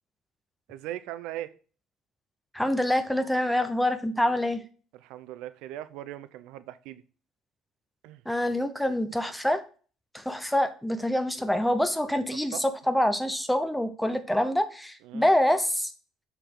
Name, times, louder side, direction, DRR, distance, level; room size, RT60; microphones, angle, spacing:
voice 1, 0.7-1.5 4.9-7.0 8.0-8.2 12.5-12.6 15.0-15.3, right 13 dB, 80° right, 0.6 m, -39 dB
voice 2, 2.5-4.6 8.3-9.6 10.1-15.9, left 1 dB, ahead, 0.6 m, -26 dB
6.7 x 4.9 x 3.7 m
cardioid pair, 160°, 0 cm